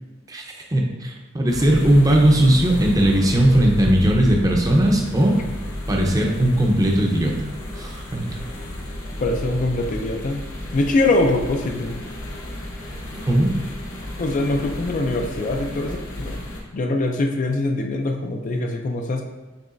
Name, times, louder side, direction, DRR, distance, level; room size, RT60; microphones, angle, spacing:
voice 1, 0.7-5.3 5.9-7.5 7.8-8.2 13.3-13.5, right 1 dB, 15° right, 0 dB, 0.6 m, -18 dB
sound 1, 1.5-16.6, left 1 dB, 75° left, 0.9 m, -32 dB
voice 2, 9.2-10.4 10.7-12.0 14.2-16.4 16.7-19.2, left 2 dB, 40° left, 3 dB, 0.4 m, -23 dB
6.8 x 3.1 x 2.5 m, 1.2 s
head